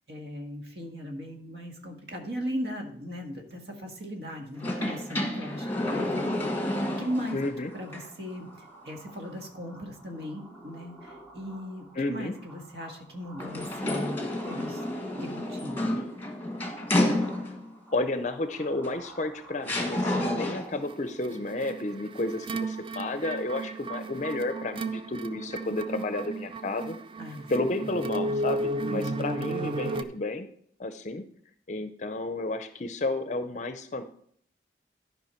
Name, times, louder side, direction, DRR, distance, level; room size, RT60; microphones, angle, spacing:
voice 1, 0.1-7.4 7.7-8.5 8.8-14.8 15.2-15.9 27.2-27.5 27.8-27.9 28.8-29.2, equal, 65° right, 2 dB, 1.6 m, -38 dB
sound 1, 4.6-7.5 7.9-8.0 13.4-17.7 18.8-18.9 19.6-20.8, left 1 dB, 10° left, 1.4 m, -30 dB
sound 2, 6.6-21.2, right 2 dB, 5° right, 3.8 m, -52 dB
voice 2, 7.3-7.7 12.0-12.4 17.9-27.0 27.5-30.5 30.8-31.2 31.7-34.0, left 2 dB, 40° left, 9 dB, 0.5 m, -31 dB
sound 3, 20.9-30.0, right 2 dB, 30° right, 0.4 m, -34 dB
12.0 x 5.5 x 4.4 m, 0.64 s
head